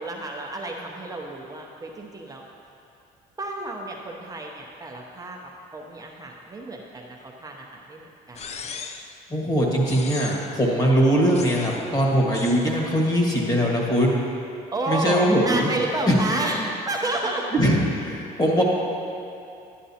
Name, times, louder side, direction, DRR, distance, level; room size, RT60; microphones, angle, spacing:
voice 1, 0.0-2.4 3.4-5.4 5.7-8.4 14.7-17.5, right 2 dB, 20° right, -1 dB, 0.7 m, -30 dB
sound 1, 8.4-9.2 9.8-10.6 11.3-11.9 12.3-12.7, left 5 dB, 40° left, 0.5 m, -37 dB
voice 2, 9.3-14.2 14.9-15.7 16.0-16.7 17.5-18.6, equal, 25° left, -2 dB, 1.7 m, -21 dB
10.0 x 10.0 x 2.8 m, 2.6 s
cardioid pair, 110°, 17 cm